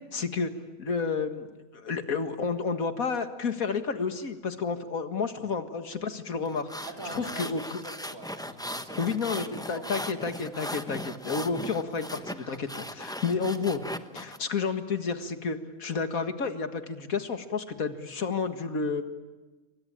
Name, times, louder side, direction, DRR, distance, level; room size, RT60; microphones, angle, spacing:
voice 1, 0.1-0.5 0.8-6.7 7.2-7.6 9.0-13.8 14.1-19.0, left 5 dB, 80° left, 8 dB, 2.2 m, -31 dB
sound 1, 6.5-14.4, equal, 5° left, 0.8 m, -38 dB
voice 2, 6.8-10.3 13.4-13.7, right 2 dB, 80° right, 3 dB, 4.2 m, -45 dB
28.0 x 23.5 x 8.9 m, 1.2 s
omnidirectional pair, 1.4 m